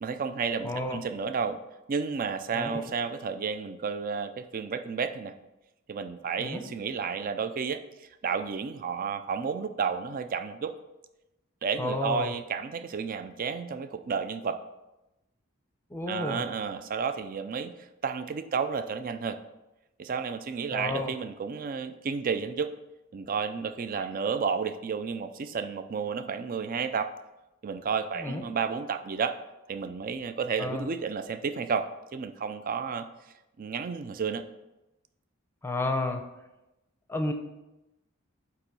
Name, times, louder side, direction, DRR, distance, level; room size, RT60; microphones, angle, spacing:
voice 1, 0.0-1.6 1.9-5.3 5.9-7.8 8.2-10.7 11.6-14.6 16.1-17.7 18.0-19.4 20.0-22.7 23.1-27.1 27.6-29.4 29.7-33.1 33.6-34.4, right 5 dB, 40° right, 10 dB, 0.4 m, -31 dB
voice 2, 0.6-1.0 2.5-2.8 6.4-6.6 11.8-12.3 15.9-16.4 20.7-21.1 28.2-28.4 30.6-30.9 35.6-36.3 37.1-37.3, left 2 dB, 10° left, 5 dB, 0.6 m, -31 dB
8.2 x 3.0 x 6.1 m, 0.96 s
head